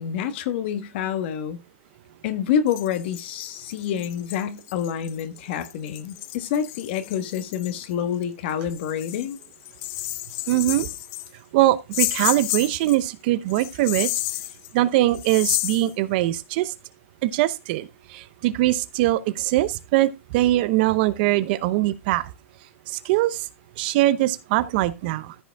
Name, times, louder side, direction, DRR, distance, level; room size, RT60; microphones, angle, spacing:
voice 1, 0.0-1.6 2.2-9.4, left 8 dB, 50° left, 1.4 m, -27 dB
sound 1, 2.7-7.7 8.2-8.3 8.7-11.3 11.9-13.1 13.5-15.9, left 18 dB, 35° left, 0.5 m, -31 dB
voice 2, 10.5-10.9 11.5-14.1 14.7-16.7 17.2-22.3 22.9-23.5 23.8-25.4, right 16 dB, 45° right, 0.7 m, -22 dB
14.0 x 5.0 x 3.4 m
hypercardioid pair, 145°, 7 cm